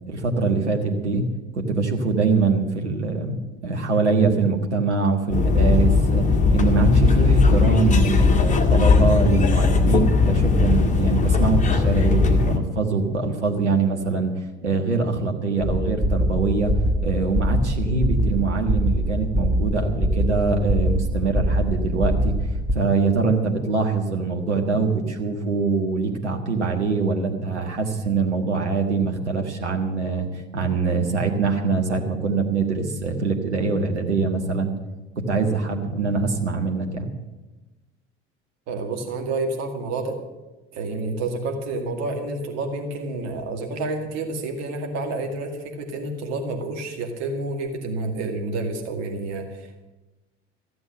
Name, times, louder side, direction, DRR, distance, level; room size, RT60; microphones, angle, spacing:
voice 1, 0.1-1.2 1.5-3.4 3.6-6.3 6.5-14.3 14.6-16.7 17.0-22.3 22.7-34.7 35.3-37.1, right 4 dB, 75° right, 2 dB, 1.6 m, -23 dB
sound 1, 5.3-12.6, left 4 dB, 20° left, 1.7 m, -18 dB
sound 2, 15.6-22.8, equal, 5° right, 1.2 m, -23 dB
voice 2, 38.7-40.2 40.7-49.9, right 2 dB, 50° right, 3 dB, 2.2 m, -29 dB
14.0 x 7.9 x 8.9 m, 1.1 s
figure-of-eight pair, 65°, 35 cm